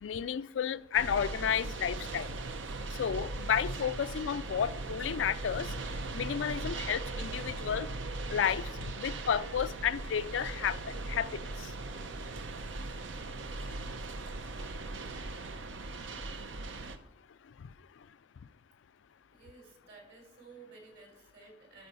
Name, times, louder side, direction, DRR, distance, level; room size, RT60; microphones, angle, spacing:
voice 1, 0.0-2.3 2.9-5.7 6.1-7.9 8.3-8.7 9.0-10.8 11.1-11.4, left 8 dB, 85° left, 0.4 m, -31 dB
sound 1, 0.9-17.0, right 2 dB, 90° right, 0.8 m, -39 dB
voice 2, 19.3-21.9, right 4 dB, 65° right, 3.5 m, -54 dB
13.0 x 4.6 x 5.5 m
head